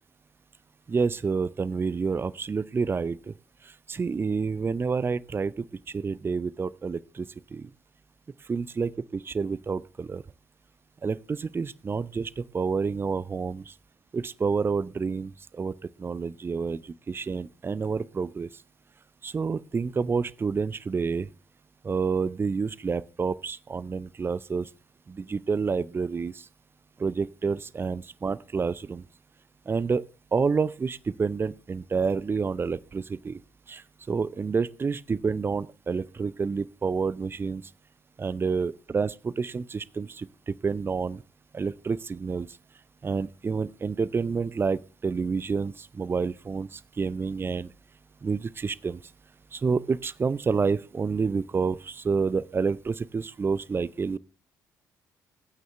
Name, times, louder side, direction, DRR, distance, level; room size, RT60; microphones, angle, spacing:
voice 1, 0.9-3.3 3.6-7.7 8.5-10.2 11.0-13.7 14.1-18.5 19.2-21.3 21.8-24.7 25.1-26.5 27.0-29.0 29.7-30.0 30.3-33.4 33.7-37.6 38.2-41.2 41.5-42.5 43.0-47.7 48.2-49.0 49.5-54.2, right 5 dB, 25° right, 0.5 m, -29 dB
21.0 x 9.2 x 3.4 m
figure-of-eight pair, 45°, 9 cm